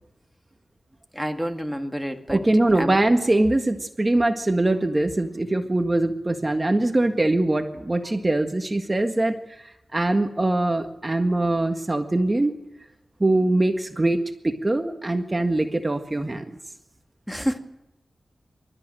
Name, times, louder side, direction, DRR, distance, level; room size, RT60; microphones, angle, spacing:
voice 1, 1.2-2.4 2.8-3.0 17.3-17.6, equal, ahead, 5 dB, 2.1 m, -28 dB
voice 2, 2.3-9.4 9.9-12.6 13.2-16.5, right 2 dB, 25° right, 5 dB, 1.7 m, -22 dB
27.0 x 13.5 x 9.1 m, 0.92 s
wide cardioid pair, 70°, 0 cm